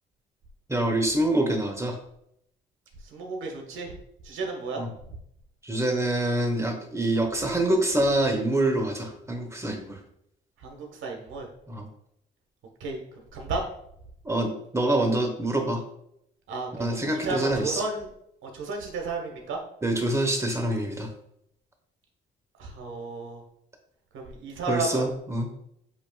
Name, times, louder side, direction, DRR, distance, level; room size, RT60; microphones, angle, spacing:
voice 1, 0.7-2.0 4.8-4.9 5.6-10.0 11.7-11.9 14.2-15.8 16.7-17.8 19.8-21.1 24.7-25.5, right 1 dB, 15° right, 4 dB, 1.0 m, -26 dB
voice 2, 3.1-3.9 4.2-4.8 10.6-11.5 12.8-13.0 13.3-13.6 16.5-18.1 18.4-19.6 22.6-23.4 24.1-25.0, right 3 dB, 80° right, 1 dB, 1.2 m, -33 dB
8.0 x 2.9 x 2.3 m, 0.74 s
cardioid pair, 90°, 20 cm